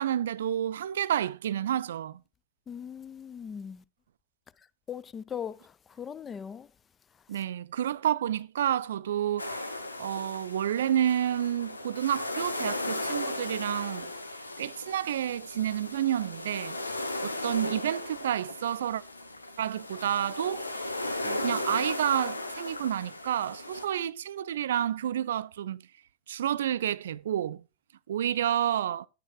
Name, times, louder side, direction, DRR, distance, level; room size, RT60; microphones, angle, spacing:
voice 1, 0.0-2.2 7.3-14.1 14.6-16.8 17.2-19.0 19.6-20.9 21.2-25.8 26.3-27.6 28.1-29.1, right 10 dB, 60° right, 0.4 m, -30 dB
voice 2, 2.7-3.8 4.9-6.7, left 8 dB, 20° left, 0.4 m, -39 dB
sound 1, 9.4-23.9, left 2 dB, 80° left, 1.0 m, -36 dB
9.9 x 8.9 x 3.0 m
figure-of-eight pair, 90°, 0 cm